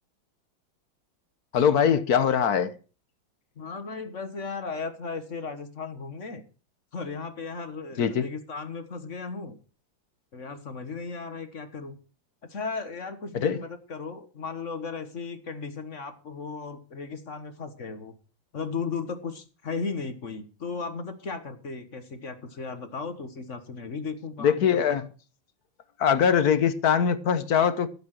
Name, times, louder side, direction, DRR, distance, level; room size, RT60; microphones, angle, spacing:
voice 1, 1.5-2.7 8.0-8.3 13.3-13.6 24.4-25.1 26.0-27.9, left 7 dB, 55° left, 1.4 m, -22 dB
voice 2, 3.6-6.4 6.9-9.6 10.3-12.0 12.5-18.2 18.5-25.0, left 4 dB, 40° left, 1.5 m, -36 dB
15.0 x 7.9 x 6.0 m
omnidirectional pair, 2.1 m